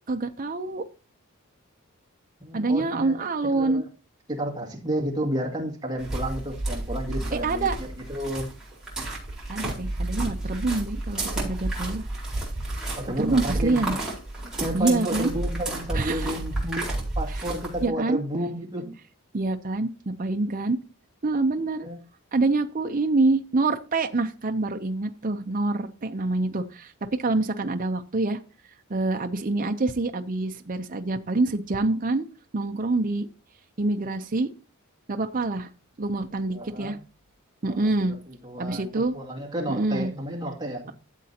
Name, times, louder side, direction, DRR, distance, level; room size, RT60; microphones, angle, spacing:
voice 1, 0.1-0.8 2.5-3.8 7.3-7.8 9.5-12.1 13.2-13.9 14.7-15.3 15.9-16.3 17.8-18.2 19.3-20.8 21.2-21.9 22.3-28.4 28.9-32.3 32.5-33.3 33.8-34.5 35.1-35.7 36.0-37.0 37.6-38.1 38.6-39.1 39.7-40.1, right 2 dB, 35° right, 0.6 m, -26 dB
voice 2, 2.4-3.2 3.5-3.9 4.3-8.5 13.0-14.0 14.6-19.0 21.8-22.0 36.5-37.0 37.6-37.9 38.3-40.9, right 1 dB, 20° right, 2.2 m, -31 dB
sound 1, 6.0-17.9, right 2 dB, 5° right, 4.2 m, -31 dB
13.0 x 7.5 x 2.8 m
head